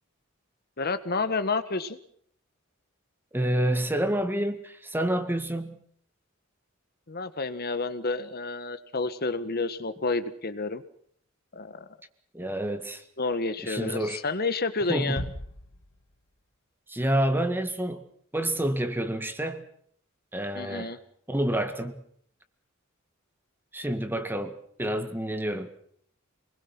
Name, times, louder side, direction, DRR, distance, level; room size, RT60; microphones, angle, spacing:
voice 1, 0.8-2.0 7.1-10.8 11.5-11.9 13.2-15.2 20.5-21.0, left 3 dB, 50° left, 12 dB, 1.6 m, -30 dB
voice 2, 3.3-5.8 12.3-13.0 13.6-14.2 14.9-15.2 16.9-18.1 18.3-19.6 20.3-21.0 21.3-22.0 23.7-25.7, right 1 dB, 10° right, 8 dB, 1.9 m, -28 dB
Bass drum, 15.2-16.6, left 1 dB, 85° left, 1.8 m, -39 dB
27.5 x 21.0 x 6.1 m, 0.63 s
head